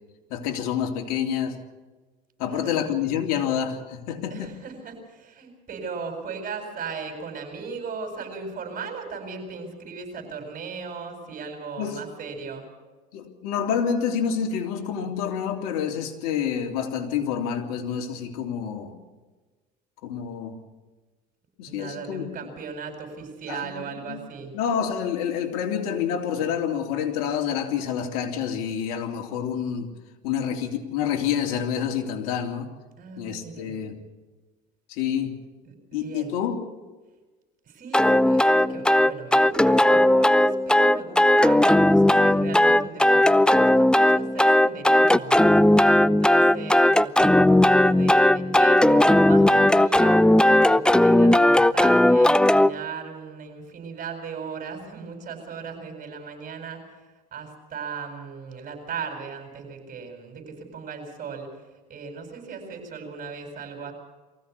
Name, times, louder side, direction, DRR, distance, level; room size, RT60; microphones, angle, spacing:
voice 1, 0.3-1.6 2.4-4.6 11.8-12.0 13.1-19.0 20.0-20.6 21.6-22.3 23.5-24.2 24.5-29.9 30.2-32.7 33.2-34.0 34.9-35.4 35.9-36.6, left 8 dB, 75° left, 4 dB, 3.2 m, -28 dB
voice 2, 2.4-2.9 4.3-12.7 21.7-24.5 33.0-33.8 35.7-36.3 37.6-45.4 46.0-50.2 50.6-56.8 57.3-61.5 61.9-63.9, right 5 dB, 40° right, 4 dB, 7.7 m, -37 dB
sound 1, 37.9-52.7, left 1 dB, 5° left, 0.7 m, -17 dB
23.5 x 16.0 x 8.3 m, 1.2 s
supercardioid pair, 85°, 20 cm